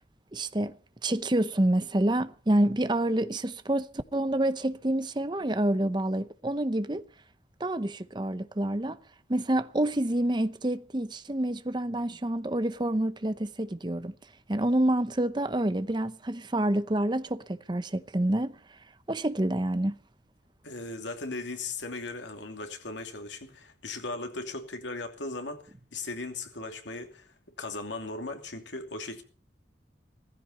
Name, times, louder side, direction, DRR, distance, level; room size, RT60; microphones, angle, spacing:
voice 1, 0.3-0.7 1.0-7.0 7.6-9.0 9.3-14.1 14.5-18.6 19.1-19.9, right 1 dB, 25° right, 0.7 m, -28 dB
voice 2, 20.6-27.3 27.6-29.2, left 3 dB, 90° left, 2.8 m, -37 dB
16.0 x 15.0 x 5.4 m
head